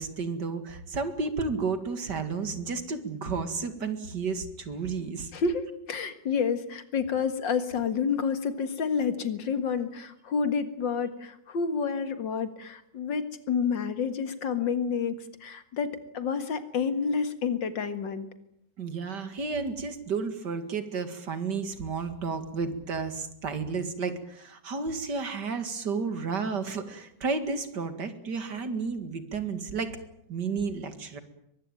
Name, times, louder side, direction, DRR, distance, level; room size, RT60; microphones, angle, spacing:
voice 1, 0.0-5.3 18.8-29.9 30.3-31.2, right 4 dB, 70° right, 9 dB, 2.7 m, -32 dB
voice 2, 5.3-18.3, left 6 dB, 85° left, 10 dB, 2.5 m, -29 dB
23.0 x 20.0 x 9.1 m, 0.78 s
omnidirectional pair, 1.9 m